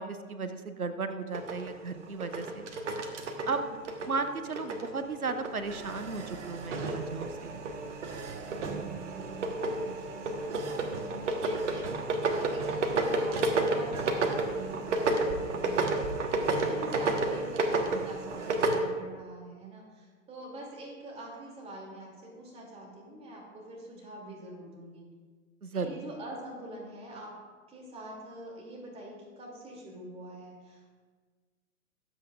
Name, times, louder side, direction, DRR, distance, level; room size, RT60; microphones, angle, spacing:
voice 1, 0.0-2.7 3.5-3.6 4.0-7.6 25.6-26.1, right 4 dB, 90° right, 9 dB, 0.9 m, -35 dB
sound 1, 1.3-4.9 5.2-18.8, right 3 dB, 55° right, 1.4 m, -31 dB
voice 2, 3.4-3.7 8.4-12.0 12.3-25.0 25.7-27.3 27.7-31.1, right 1 dB, 15° right, -3 dB, 2.7 m, -45 dB
22.5 x 8.2 x 2.5 m, 1.5 s
figure-of-eight pair, 115°, 42 cm